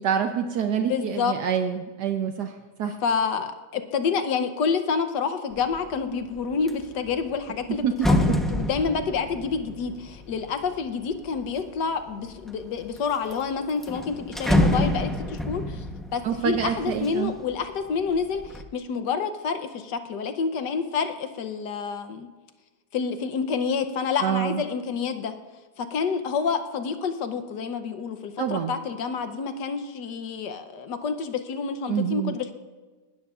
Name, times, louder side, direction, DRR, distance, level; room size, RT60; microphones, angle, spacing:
voice 1, 0.0-2.5 2.8-3.0 7.8-7.9 16.2-17.3 24.2-24.6 28.4-28.7 31.9-32.4, right 8 dB, 70° right, 6 dB, 1.3 m, -26 dB
voice 2, 0.9-1.3 3.0-15.9 16.1-22.3 22.9-25.3 25.8-32.5, left 5 dB, 75° left, 9 dB, 1.5 m, -28 dB
sound 1, 5.6-5.9 6.3-11.7 12.3-13.0 13.3-13.4 13.7-17.6 18.0-18.6, left 1 dB, ahead, 0.4 m, -27 dB
19.0 x 13.0 x 2.5 m, 1.3 s
omnidirectional pair, 1.9 m